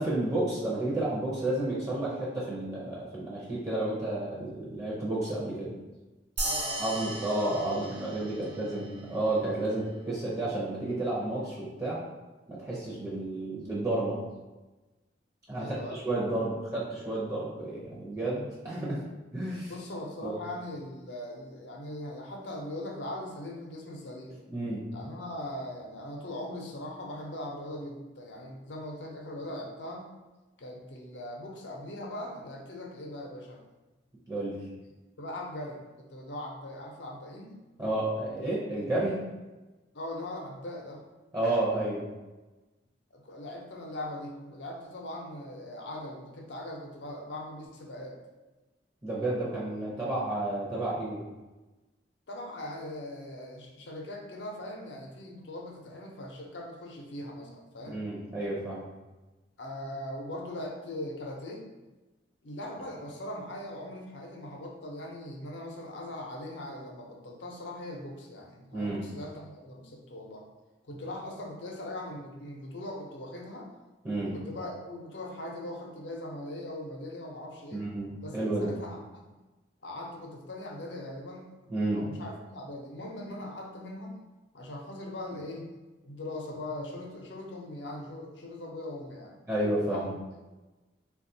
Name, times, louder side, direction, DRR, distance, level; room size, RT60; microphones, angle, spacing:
voice 1, 0.0-5.7 6.8-12.0 12.5-14.2 15.5-19.0 19.3-19.7 20.2-20.3 24.5-24.8 34.3-34.6 37.8-39.2 41.3-42.0 49.0-51.2 57.9-58.9 68.7-69.0 74.0-74.3 77.7-78.7 81.7-82.1 89.5-90.1, right 2 dB, 15° right, -7 dB, 0.6 m, -31 dB
voice 2, 6.4-8.8 15.5-16.1 19.7-24.4 24.9-30.1 30.6-33.6 35.2-37.6 39.9-41.0 43.1-48.2 52.3-58.0 59.6-61.6 62.4-70.4 70.8-73.7 74.2-77.8 78.2-79.3 79.8-81.5 81.9-84.2 84.5-85.7 86.0-89.4 89.9-90.1, left 1 dB, 80° left, 0 dB, 0.6 m, -40 dB
sound 1, 6.4-9.1, right 2 dB, 75° right, 0.7 m, -36 dB
3.4 x 2.3 x 2.6 m, 1.1 s
head